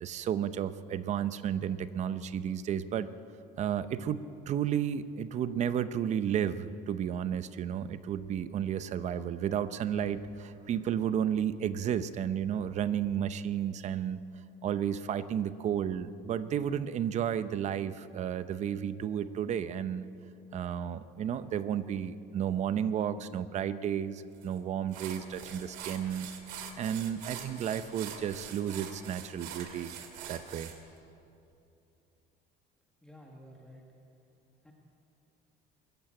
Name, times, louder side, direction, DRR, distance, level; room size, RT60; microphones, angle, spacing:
voice 1, 0.0-3.1 3.6-14.2 14.6-20.0 20.5-26.3 26.8-29.9 30.3-30.7, right 9 dB, 40° right, 13 dB, 0.7 m, -32 dB
sound 1, 24.4-24.5 24.9-30.8, right 9 dB, 90° right, 2.3 m, -44 dB
voice 2, 33.0-34.2 34.6-34.7, equal, 5° left, -1 dB, 1.6 m, -53 dB
22.5 x 14.0 x 8.9 m, 2.7 s
cardioid pair, 155°, 19 cm